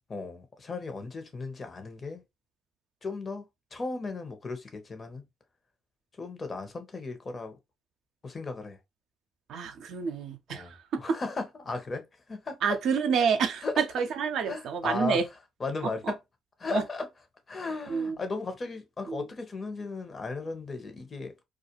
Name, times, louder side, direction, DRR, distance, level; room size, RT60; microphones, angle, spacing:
voice 1, 0.1-2.2 3.0-3.5 3.7-5.2 6.2-7.6 8.2-8.8 10.5-12.6 13.6-13.8 14.4-15.3 15.6-16.2 16.6-17.1 17.5-21.3, left 3 dB, 40° left, 0.8 m, -36 dB
voice 2, 9.5-10.8 11.1-11.2 12.6-15.2 16.7-16.8 17.9-18.2 19.1-19.3, right 6 dB, 65° right, 0.5 m, -28 dB
2.3 x 2.2 x 2.9 m
hypercardioid pair, 50°, 0 cm